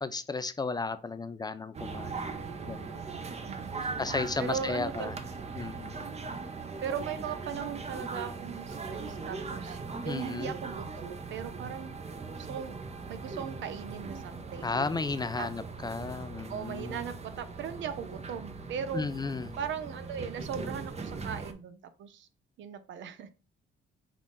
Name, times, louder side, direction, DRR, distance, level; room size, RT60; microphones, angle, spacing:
voice 1, 0.0-3.0 3.8-5.1 5.6-6.0 10.1-10.5 14.6-17.0 18.9-19.5, left 4 dB, 20° left, 12 dB, 0.3 m, -34 dB
sound 1, 1.7-21.5, right 4 dB, 35° right, 0.7 m, -40 dB
voice 2, 3.5-3.9 4.4-5.1 6.8-9.8 10.0-11.9 12.4-12.7 13.1-14.8 15.4-15.7 16.5-19.1 19.6-22.3 22.6-23.3, right 7 dB, 70° right, 11 dB, 0.6 m, -38 dB
5.7 x 2.5 x 3.7 m, 0.32 s
cardioid pair, 90°, 20 cm